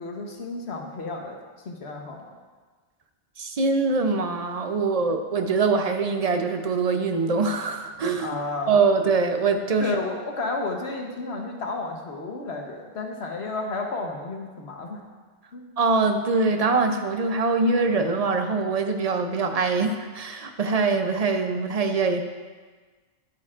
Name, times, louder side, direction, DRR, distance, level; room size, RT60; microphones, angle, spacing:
voice 1, 0.0-1.4 1.6-2.2 8.2-8.7 9.8-15.0 15.5-15.6, left 3 dB, 60° left, 1 dB, 1.3 m, -32 dB
voice 2, 3.4-8.3 8.7-10.0 15.8-22.2, right 4 dB, 45° right, 6 dB, 0.5 m, -23 dB
11.5 x 8.7 x 2.5 m, 1.4 s
omnidirectional pair, 1.3 m